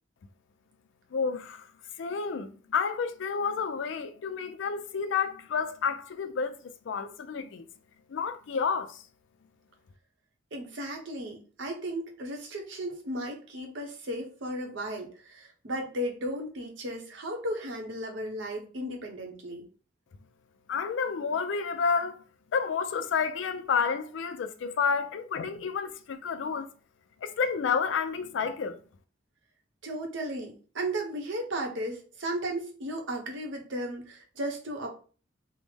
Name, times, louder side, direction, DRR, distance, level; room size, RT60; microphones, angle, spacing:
voice 1, 1.1-1.7 2.0-7.6 8.1-9.0 20.7-22.2 22.5-26.7 27.2-28.8, left 5 dB, 70° left, 0.4 m, -30 dB
voice 2, 10.5-19.7 29.8-34.9, right 1 dB, 75° right, 0.8 m, -35 dB
3.2 x 2.0 x 3.3 m
head